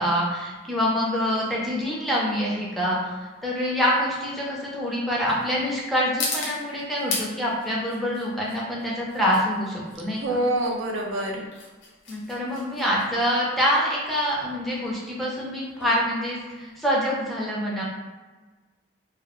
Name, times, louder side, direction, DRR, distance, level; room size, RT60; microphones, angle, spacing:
voice 1, 0.0-10.2 12.1-17.8, equal, ahead, -5 dB, 0.4 m, -26 dB
sound 1, 0.6-17.2, left 3 dB, 80° left, 0.6 m, -38 dB
voice 2, 10.2-11.4, right 1 dB, 85° right, 0 dB, 0.5 m, -26 dB
2.2 x 2.0 x 2.8 m, 1.3 s
head